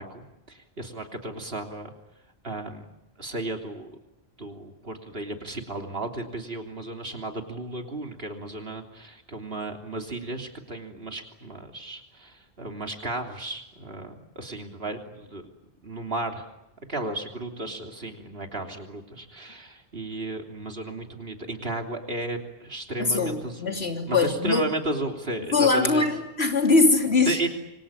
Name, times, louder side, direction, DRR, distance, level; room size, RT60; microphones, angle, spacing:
voice 1, 0.0-1.9 2.4-2.8 3.2-4.0 4.4-15.4 15.8-16.5 16.9-23.8 24.1-26.1 27.3-27.5, right 2 dB, 65° right, 4 dB, 3.5 m, -34 dB
voice 2, 23.0-24.7 25.5-27.5, left 3 dB, 80° left, 4 dB, 3.6 m, -22 dB
27.5 x 24.5 x 8.7 m, 0.88 s
omnidirectional pair, 1.1 m